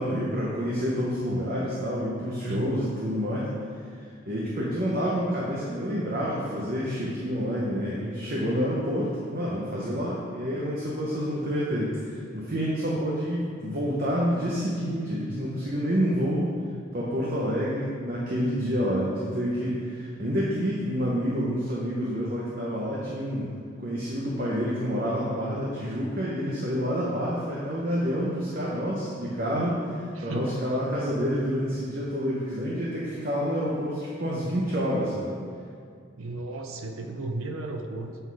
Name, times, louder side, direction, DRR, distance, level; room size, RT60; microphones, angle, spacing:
voice 1, 0.0-3.5 4.3-16.5 16.9-23.5 23.8-35.4, equal, 45° right, -5 dB, 0.9 m, -28 dB
voice 2, 2.4-2.8 30.2-30.6 36.2-38.2, right 2 dB, 85° right, 4 dB, 0.6 m, -34 dB
8.0 x 4.0 x 4.7 m, 2.2 s
head